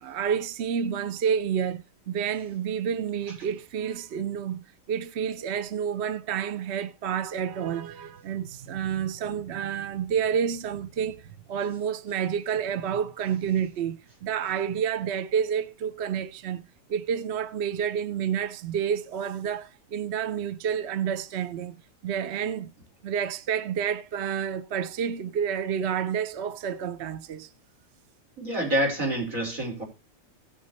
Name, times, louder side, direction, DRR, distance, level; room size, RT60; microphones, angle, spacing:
voice 1, 0.0-11.2 11.5-16.6 16.9-21.8 22.0-22.7 23.0-27.5, right 8 dB, 60° right, 0.9 m, -29 dB
voice 2, 28.4-29.8, right 1 dB, 90° right, 5.4 m, -27 dB
18.0 x 7.4 x 3.0 m
omnidirectional pair, 1.4 m